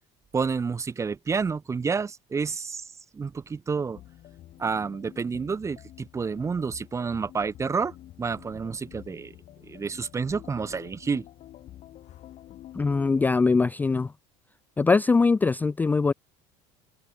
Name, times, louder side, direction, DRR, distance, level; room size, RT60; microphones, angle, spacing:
voice 1, 0.3-2.9 3.1-4.0 4.6-9.3 9.6-11.2, right 5 dB, 20° right, 0.8 m, -29 dB
sound 1, 3.9-13.3, left 13 dB, 50° left, 3.6 m, -48 dB
voice 2, 12.7-14.1 14.8-16.1, left 4 dB, 10° left, 0.3 m, -22 dB
open air
supercardioid pair, 105°, 15 cm